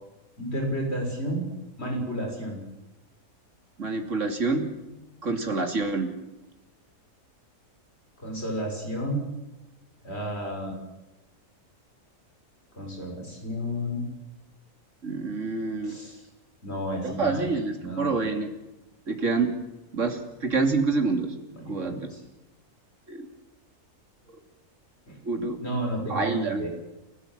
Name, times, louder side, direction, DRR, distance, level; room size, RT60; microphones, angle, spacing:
voice 1, 0.4-1.4 1.8-2.6 8.2-9.3 10.0-10.7 12.8-14.0 15.8-16.2 16.6-17.5 17.8-18.1 21.5-22.2 25.1-25.2 25.6-26.7, equal, 45° left, 1 dB, 6.9 m, -31 dB
voice 2, 3.8-4.7 5.2-6.1 15.0-15.9 17.0-18.5 19.1-19.5 19.9-21.3 21.7-22.0 23.1-23.3 24.3-24.4 25.2-25.6 26.1-26.6, right 3 dB, 55° right, 5 dB, 3.2 m, -27 dB
30.0 x 14.5 x 7.5 m, 1.0 s
omnidirectional pair, 1.6 m